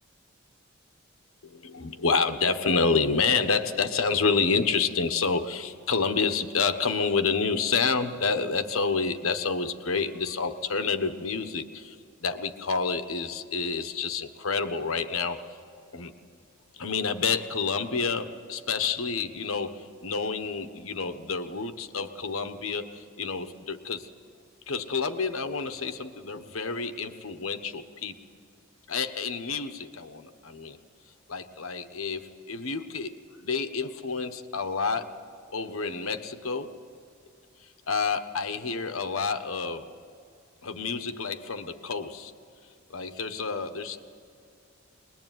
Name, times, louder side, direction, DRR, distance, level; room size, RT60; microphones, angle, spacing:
voice 1, 1.4-12.0 12.2-15.4 15.9-16.1 16.8-24.1 24.7-28.1 28.9-30.8 31.3-35.1 35.5-36.8 37.9-39.9 40.6-42.3 42.9-44.0, left 4 dB, 85° left, 9 dB, 1.3 m, -29 dB
23.5 x 21.0 x 9.3 m, 2.4 s
head